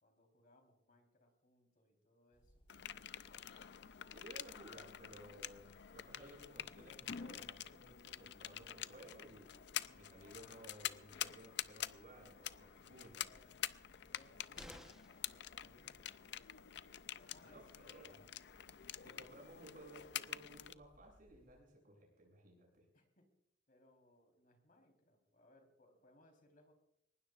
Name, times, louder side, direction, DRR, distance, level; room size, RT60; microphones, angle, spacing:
voice 1, 0.0-2.6 9.6-10.0 11.2-11.5 12.9-13.6 13.9-16.5 17.2-18.3 19.1-19.4 22.9-23.4 23.7-26.7, left 1 dB, 50° left, 4 dB, 3.9 m, -69 dB
sound 1, 2.3-21.6, equal, 30° left, 4.5 m, -69 dB
sound 2, 2.7-20.7, left 11 dB, 65° left, 0.5 m, -47 dB
voice 2, 4.1-9.5 9.9-13.3 17.4-18.2 19.0-22.8, right 1 dB, 50° right, -1 dB, 7.5 m, -58 dB
sound 3, 14.5-15.3 17.2-17.3 17.7-17.8, equal, 5° right, 1.0 m, -55 dB
22.5 x 20.0 x 2.5 m, 0.79 s
head